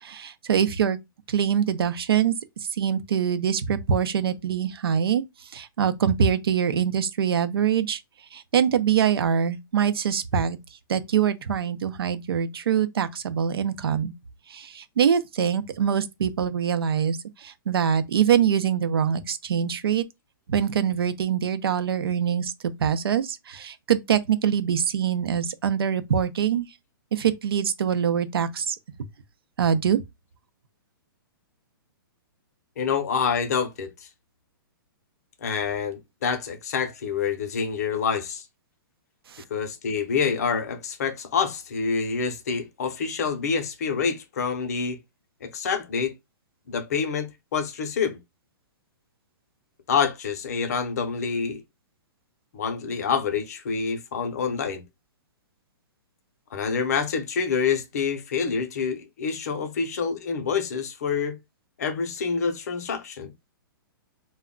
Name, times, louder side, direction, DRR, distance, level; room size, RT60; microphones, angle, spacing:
voice 1, 0.0-1.0 1.3-2.3 2.8-5.2 5.5-8.0 8.3-10.6 10.9-14.1 14.5-20.0 20.5-22.5 22.8-26.7 27.1-28.8 29.6-30.0 39.3-39.4, right 8 dB, 90° right, 0.6 m, -24 dB
voice 2, 32.8-33.9 35.4-38.4 39.5-45.0 45.4-46.1 46.7-48.2 49.9-51.6 52.5-54.8 56.5-61.4 61.8-63.3, left 6 dB, 45° left, 0.6 m, -27 dB
2.2 x 2.1 x 3.7 m
hypercardioid pair, 180°, 12 cm